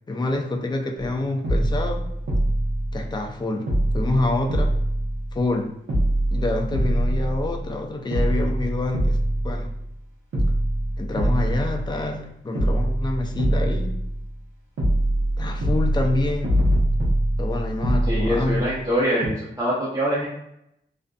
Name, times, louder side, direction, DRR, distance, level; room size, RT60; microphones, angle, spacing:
voice 1, 0.1-2.1 2.9-3.7 3.9-4.8 5.3-5.7 6.3-9.2 9.4-9.7 10.5-10.6 11.0-14.0 15.4-16.6 17.4-18.6, left 2 dB, 20° left, 2 dB, 0.4 m, -27 dB
sound 1, 1.0-1.1 1.4-3.4 3.7-5.6 5.9-7.7 8.1-10.0 10.3-12.2 12.5-14.5 14.8-18.9 19.2-19.3, right 1 dB, 90° right, 0.8 m, -24 dB
voice 2, 18.0-20.2, equal, 20° right, -8 dB, 0.6 m, -24 dB
2.5 x 2.5 x 2.2 m, 0.81 s
wide cardioid pair, 100°, 20 cm